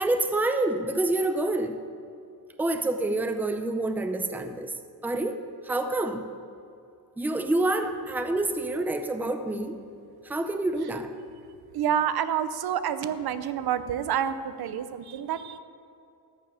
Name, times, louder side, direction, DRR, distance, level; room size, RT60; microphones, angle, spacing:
voice 1, 0.0-1.8 2.6-4.7 5.0-6.2 7.2-9.8 10.2-11.1, right 2 dB, 5° right, 6 dB, 0.6 m, -27 dB
voice 2, 11.7-15.6, right 9 dB, 70° right, 12 dB, 0.7 m, -28 dB
14.0 x 5.5 x 9.7 m, 2.6 s
wide cardioid pair, 170°, 39 cm